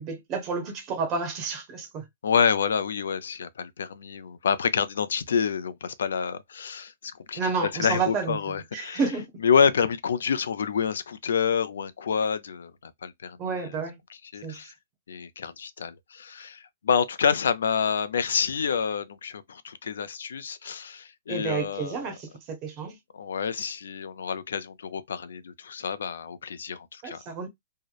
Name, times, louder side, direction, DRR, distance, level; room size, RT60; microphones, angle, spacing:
voice 1, 0.0-2.0 7.4-9.3 13.4-14.0 14.4-14.7 21.3-23.0 27.0-27.5, right 5 dB, 20° right, 0.5 m, -30 dB
voice 2, 2.2-9.0 9.4-13.7 14.3-14.7 15.1-22.2 23.1-27.2, left 6 dB, 90° left, 0.4 m, -28 dB
2.8 x 2.0 x 2.3 m
hypercardioid pair, 180°, 0 cm